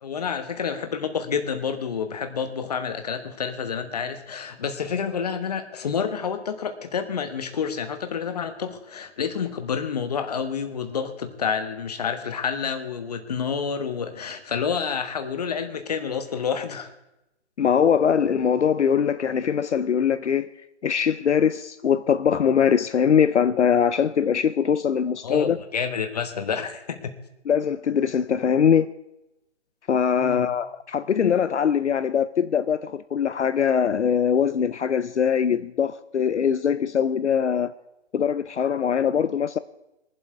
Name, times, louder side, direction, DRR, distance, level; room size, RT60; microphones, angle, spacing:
voice 1, 0.0-16.9 25.2-27.2 30.1-30.4, left 6 dB, 35° left, 1.2 m, -29 dB
voice 2, 17.6-20.5 20.8-25.6 27.5-28.9 29.9-37.7 38.1-39.6, left 7 dB, 75° left, 0.6 m, -22 dB
23.0 x 7.7 x 4.7 m
figure-of-eight pair, 160°, 35 cm